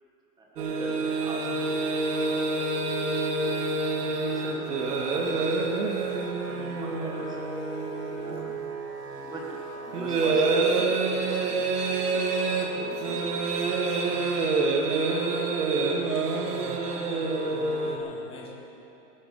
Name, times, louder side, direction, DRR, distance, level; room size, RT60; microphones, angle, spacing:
voice 1, 0.4-2.7 4.0-7.4 8.1-8.5 9.1-12.1 12.4-13.2 13.5-14.2, right 1 dB, 10° right, -2 dB, 1.7 m, -43 dB
sound 1, 0.6-18.0, right 3 dB, 75° right, 2.1 m, -27 dB
voice 2, 16.4-18.5, left 2 dB, 10° left, -4 dB, 2.0 m, -45 dB
21.0 x 9.2 x 5.7 m, 3.0 s
hypercardioid pair, 160°, 47 cm